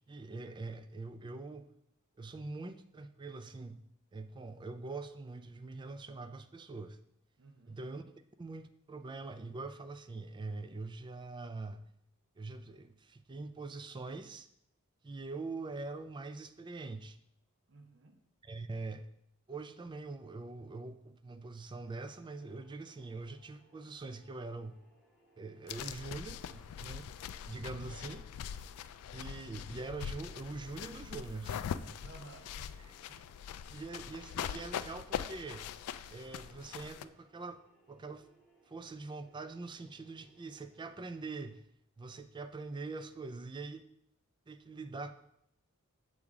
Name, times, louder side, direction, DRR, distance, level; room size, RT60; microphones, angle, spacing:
voice 1, 0.1-1.7 2.2-3.8 4.1-7.0 7.7-8.0 8.4-11.9 12.4-14.5 15.0-17.2 18.4-19.1 19.5-24.8 25.4-27.1 27.5-28.2 29.1-32.0 33.1-33.2 33.7-35.8 36.1-37.6 37.9-38.2 38.7-41.6 42.0-43.8 44.5-45.1, right 3 dB, 20° right, 10 dB, 0.3 m, -43 dB
voice 2, 7.4-7.8 17.7-18.2 27.8-28.0 32.0-32.9, right 2 dB, 60° right, 4 dB, 0.7 m, -55 dB
sound 1, 21.8-41.0, right 1 dB, ahead, 1.2 m, -68 dB
sound 2, 25.7-37.0, left 8 dB, 80° left, 0.3 m, -42 dB
7.1 x 4.8 x 3.6 m, 0.76 s
head